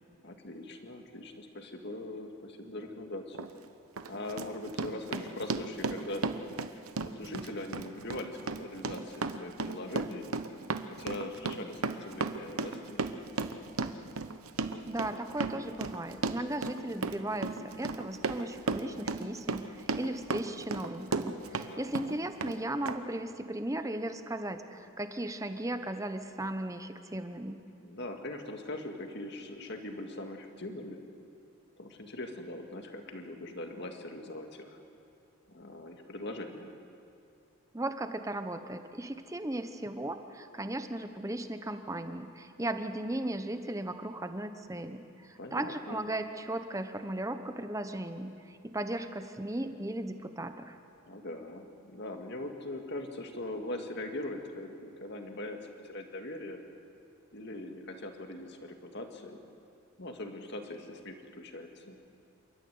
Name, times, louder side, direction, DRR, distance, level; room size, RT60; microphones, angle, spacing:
voice 1, 0.2-3.4 4.1-6.3 7.0-10.3 10.9-13.0 21.5-22.1 27.8-31.0 31.8-34.8 35.5-36.7 45.4-46.0 51.1-55.6 55.8-56.6 57.3-59.4 60.0-62.0, left 1 dB, 50° left, 4 dB, 2.1 m, -41 dB
Run, 3.3-3.5 4.0-21.7 22.0-22.6 22.9-23.0, right 4 dB, 85° right, 1.0 m, -35 dB
voice 2, 14.9-17.5 17.8-27.6 37.7-50.8, right 1 dB, 15° right, 8 dB, 1.0 m, -36 dB
29.0 x 13.5 x 9.5 m, 2.4 s
head